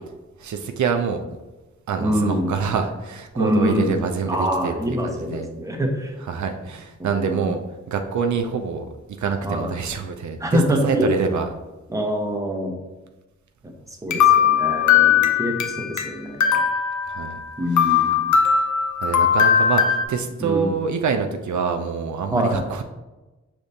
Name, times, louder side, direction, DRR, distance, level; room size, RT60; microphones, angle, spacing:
voice 1, 0.4-1.2 1.9-5.5 6.3-7.6 7.9-8.9 9.2-11.5 17.1-17.4 17.8-18.0 19.0-22.8, right 6 dB, 75° right, 5 dB, 0.5 m, -26 dB
voice 2, 2.0-2.5 3.3-4.0 4.3-6.1 7.0-7.5 9.4-9.7 10.4-11.1 11.9-12.7 14.0-16.6 17.6-18.4 20.4-20.7 22.3-22.6, equal, 10° right, 2 dB, 0.9 m, -25 dB
sound 1, 14.1-16.1 16.4-17.5 17.8-20.0, left 8 dB, 80° left, 0.5 m, -19 dB
5.0 x 3.4 x 2.7 m, 1.1 s
cardioid pair, 60°, 29 cm